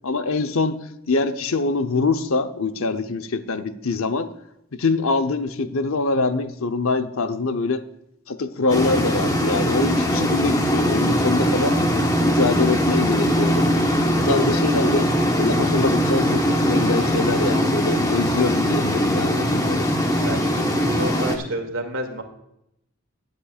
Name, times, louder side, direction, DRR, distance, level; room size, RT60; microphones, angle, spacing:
voice 1, 0.0-0.8 1.1-4.3 4.7-7.8 8.3-11.8 12.2-13.7 14.2-15.1 15.4-19.9, left 3 dB, 80° left, 9 dB, 0.8 m, -24 dB
sound 1, 8.7-21.4, equal, 15° left, 1.1 m, -21 dB
voice 2, 20.2-22.2, right 1 dB, 75° right, 4 dB, 2.1 m, -30 dB
18.5 x 8.6 x 2.4 m, 0.79 s
head